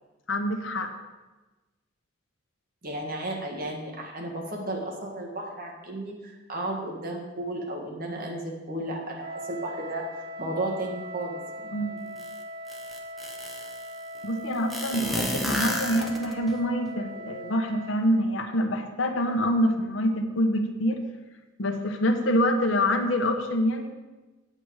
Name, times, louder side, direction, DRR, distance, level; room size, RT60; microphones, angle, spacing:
voice 1, 0.3-0.9 11.7-12.0 14.2-21.0 21.6-23.9, equal, 75° left, 5 dB, 1.0 m, -26 dB
voice 2, 2.8-10.1 10.4-11.7, right 1 dB, 50° right, 0 dB, 1.7 m, -34 dB
Wind instrument woodwind instrument, 9.2-18.1, equal, 75° right, 2.4 m, -40 dB
sound 1, 12.2-12.3 12.7-13.8 14.7-16.5, equal, ahead, 0.9 m, -31 dB
8.8 x 7.9 x 4.7 m, 1.2 s
head